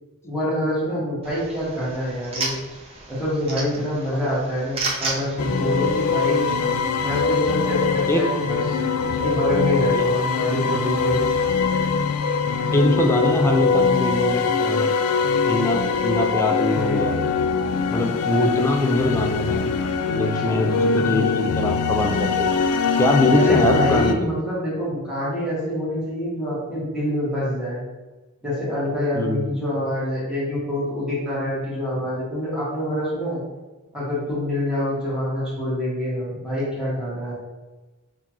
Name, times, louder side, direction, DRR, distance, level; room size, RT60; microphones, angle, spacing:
voice 1, 0.2-2.5 3.1-6.5 7.0-8.6 9.0-11.2 20.3-20.5 23.3-27.8 28.4-33.4 33.9-37.3, left 1 dB, 5° right, -9 dB, 1.3 m, -26 dB
sound 1, 1.2-6.6, right 3 dB, 25° right, 0.7 m, -33 dB
sound 2, 5.4-24.1, left 5 dB, 90° left, 0.3 m, -22 dB
voice 2, 12.7-14.9 15.5-17.2 17.9-19.7 20.1-22.5 23.0-24.1 29.1-29.5, left 1 dB, 10° left, 3 dB, 0.4 m, -23 dB
5.5 x 2.4 x 3.0 m, 1.2 s
head